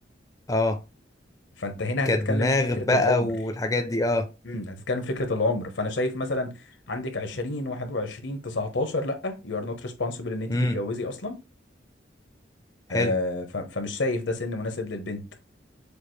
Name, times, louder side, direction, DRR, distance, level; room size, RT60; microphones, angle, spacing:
voice 1, 0.5-0.8 2.1-4.3 10.5-10.8 12.9-13.1, left 2 dB, 20° left, 0.4 m, -24 dB
voice 2, 1.6-3.3 4.4-6.6 6.9-11.4 12.9-15.2, left 2 dB, 85° left, 1.0 m, -29 dB
6.7 x 2.5 x 3.1 m
head